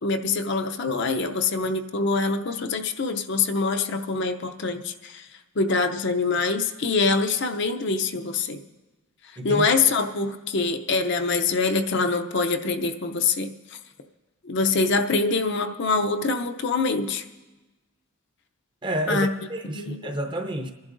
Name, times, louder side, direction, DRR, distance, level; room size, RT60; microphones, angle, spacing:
voice 1, 0.0-5.2 5.6-8.6 9.4-13.5 14.4-17.2 19.1-19.3 19.7-20.1, left 4 dB, 50° left, 5 dB, 0.6 m, -24 dB
voice 2, 18.8-20.7, right 1 dB, 20° right, 4 dB, 0.7 m, -29 dB
29.0 x 11.0 x 2.6 m, 1.2 s
head